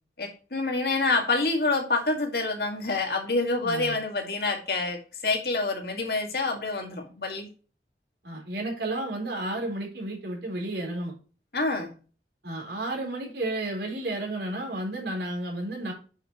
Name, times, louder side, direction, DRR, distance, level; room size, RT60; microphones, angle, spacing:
voice 1, 0.2-7.5 11.5-11.9, left 3 dB, 60° left, 3 dB, 2.1 m, -27 dB
voice 2, 3.6-3.9 8.2-11.1 12.4-15.9, right 1 dB, 70° right, 0 dB, 4.2 m, -32 dB
9.2 x 5.9 x 3.0 m, 0.36 s
head